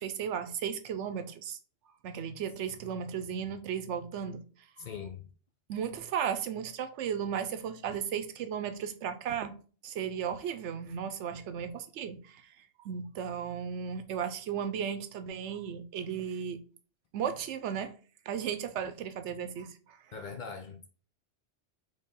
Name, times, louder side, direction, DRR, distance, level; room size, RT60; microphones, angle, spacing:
voice 1, 0.0-1.6 2.0-4.4 5.7-9.6 9.8-12.6 12.8-16.6 17.1-17.9 18.3-20.0, right 8 dB, 80° right, 0.9 m, -35 dB
voice 2, 4.8-5.3 20.1-20.9, left 6 dB, 55° left, 0.6 m, -41 dB
4.3 x 3.3 x 3.7 m
omnidirectional pair, 1.2 m